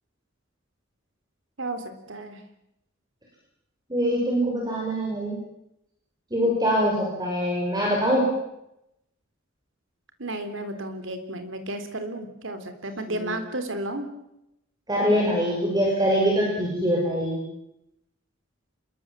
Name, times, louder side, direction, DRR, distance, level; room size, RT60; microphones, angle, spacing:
voice 1, 1.6-2.4 10.2-14.1, right 1 dB, 65° right, 8 dB, 3.5 m, -33 dB
voice 2, 3.9-5.4 6.3-8.2 13.1-13.4 14.9-17.4, equal, 20° right, -2 dB, 6.4 m, -23 dB
26.5 x 22.5 x 7.6 m, 0.84 s
head